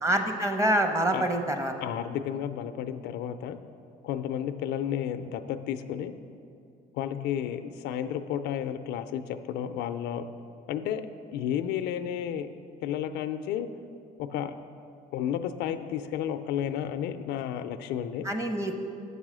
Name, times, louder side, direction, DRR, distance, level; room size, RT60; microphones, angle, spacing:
voice 1, 0.0-1.7 18.2-18.8, right 1 dB, 15° right, 5 dB, 0.8 m, -26 dB
voice 2, 1.8-3.6 4.0-6.1 6.9-10.2 10.7-11.0 11.3-12.5 12.8-13.7 14.2-14.5 15.1-18.3, left 9 dB, 85° left, 10 dB, 0.4 m, -32 dB
8.0 x 5.5 x 6.1 m, 2.4 s
cardioid pair, 110°, 17 cm